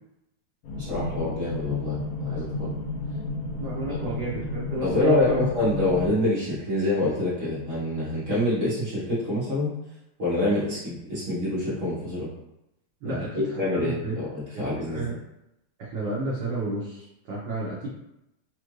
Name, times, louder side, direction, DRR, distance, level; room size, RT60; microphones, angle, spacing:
sound 1, 0.6-6.1, left 2 dB, 75° left, 1.9 m, -32 dB
voice 1, 0.7-2.7 4.8-9.7 10.2-12.3 13.0-15.2, left 2 dB, 50° right, -11 dB, 0.8 m, -26 dB
voice 2, 3.6-5.4 13.0-13.5 13.7-14.1 14.9-15.1 15.8-17.9, right 2 dB, 75° right, -7 dB, 1.2 m, -31 dB
5.0 x 2.5 x 3.1 m, 0.88 s
omnidirectional pair, 3.4 m